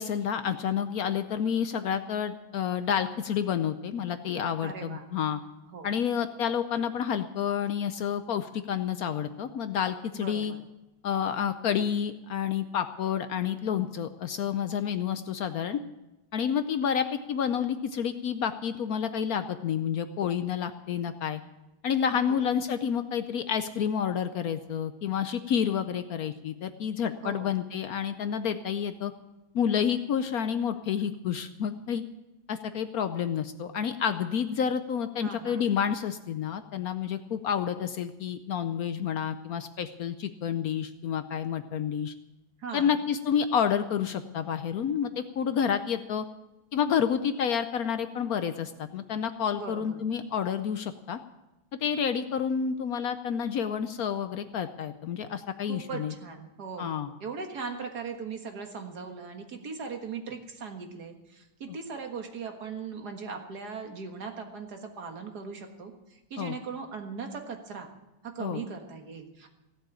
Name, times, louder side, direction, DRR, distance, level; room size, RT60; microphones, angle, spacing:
voice 1, 0.0-5.4 5.8-10.5 11.0-15.8 16.3-21.4 21.8-29.1 29.5-32.0 32.5-42.1 42.7-46.2 46.7-51.2 51.8-56.1 56.8-57.1 66.4-66.6 68.4-68.6, left 8 dB, 70° left, 10 dB, 0.8 m, -29 dB
voice 2, 4.6-5.1 5.7-5.9 10.1-10.6 22.3-22.5 27.2-27.5 35.2-35.7 42.6-42.9 49.5-50.0 55.7-56.9 57.2-67.9 68.2-69.5, right 5 dB, 50° right, 4 dB, 2.0 m, -39 dB
16.5 x 7.6 x 8.8 m, 0.99 s
omnidirectional pair, 2.2 m